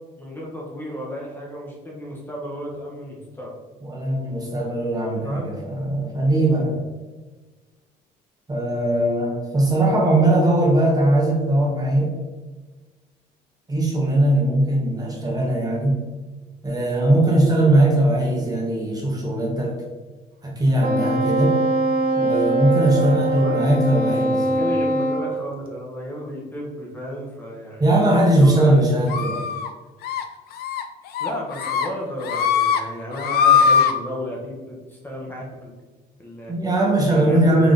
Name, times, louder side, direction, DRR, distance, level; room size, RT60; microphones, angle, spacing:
voice 1, 0.2-3.6 5.2-5.5 22.9-23.9 24.4-27.8 28.4-29.4 31.2-35.7 36.2-36.5 37.0-37.7, equal, 10° left, -3 dB, 1.0 m, -33 dB
voice 2, 3.8-6.8 8.5-12.1 13.7-15.9 16.6-19.7 20.4-21.6 22.2-24.6 27.8-29.3 36.5-37.7, right 1 dB, 20° right, -2 dB, 1.2 m, -19 dB
Wind instrument woodwind instrument, 20.8-25.3, right 1 dB, 60° right, 0.7 m, -22 dB
sound 1, 29.1-29.7 30.0-30.2 30.6-30.8 31.1-31.9 32.2-32.8 33.1-33.9, left 7 dB, 65° left, 0.5 m, -20 dB
3.7 x 3.5 x 3.8 m, 1.3 s
cardioid pair, 110°, 17 cm